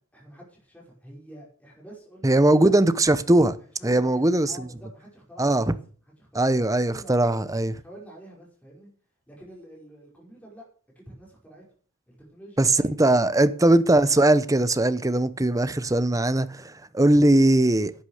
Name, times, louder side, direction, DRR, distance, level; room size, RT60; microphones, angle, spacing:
voice 1, 0.1-2.7 3.8-5.8 6.2-7.4 7.8-8.9 9.3-10.7 11.0-11.6 12.1-12.9 13.2-13.8, right 1 dB, 5° left, 5.3 m, -47 dB
voice 2, 2.2-3.6 3.8-4.7 5.4-5.7 6.3-7.7 12.6-12.7 13.0-17.9, right 1 dB, 15° right, 0.8 m, -20 dB
11.5 x 9.5 x 6.6 m
head